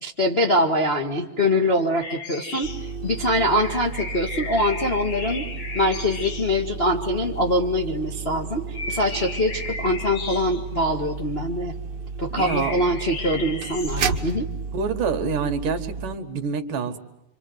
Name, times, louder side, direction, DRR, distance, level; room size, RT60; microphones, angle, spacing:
voice 1, 0.0-2.7 3.0-5.4 5.7-11.8 12.2-14.5, left 1 dB, 30° left, 1 dB, 1.2 m, -23 dB
sound 1, 2.0-6.7 8.2-8.4 8.7-10.9 12.4-14.2, left 3 dB, 45° left, 3.2 m, -35 dB
sound 2, 2.6-16.2, right 5 dB, 90° right, 0.9 m, -33 dB
voice 2, 12.3-12.8 14.7-17.0, right 5 dB, 65° right, 7 dB, 3.2 m, -26 dB
27.5 x 26.0 x 8.0 m, 0.90 s
omnidirectional pair, 4.2 m